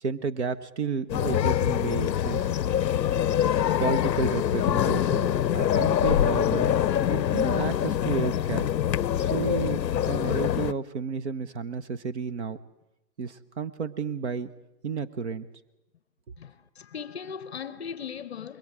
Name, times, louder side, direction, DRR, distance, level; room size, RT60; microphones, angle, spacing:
voice 1, 0.0-2.5 3.8-6.7 7.1-8.7 9.2-12.6 13.2-14.5 14.8-15.5, right 5 dB, 45° right, 0.9 m, -31 dB
sound 1, 1.1-10.7, left 10 dB, 80° left, 0.7 m, -25 dB
voice 2, 16.4-18.6, left 7 dB, 40° left, 0.7 m, -38 dB
27.0 x 22.0 x 4.8 m
hypercardioid pair, 155°, 50 cm